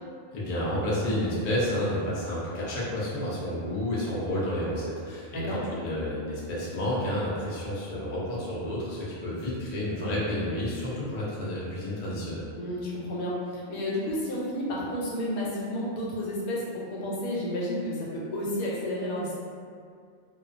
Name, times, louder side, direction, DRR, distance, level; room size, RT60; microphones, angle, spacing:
voice 1, 0.3-12.5, left 1 dB, 60° left, -7 dB, 0.4 m, -30 dB
voice 2, 12.6-19.3, left 1 dB, 85° left, -5 dB, 1.1 m, -31 dB
2.3 x 2.2 x 2.4 m, 2.2 s
omnidirectional pair, 1.5 m